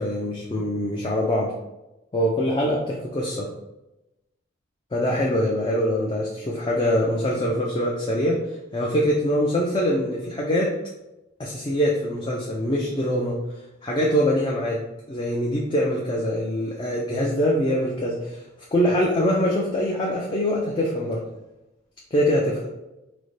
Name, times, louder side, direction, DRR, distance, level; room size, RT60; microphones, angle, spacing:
voice 1, 0.0-1.5 2.1-3.5 4.9-10.7 11.4-13.4 13.8-14.8 15.1-18.4 18.7-21.2 22.1-22.7, equal, 25° left, -3 dB, 0.3 m, -23 dB
3.8 x 2.1 x 3.2 m, 0.98 s
head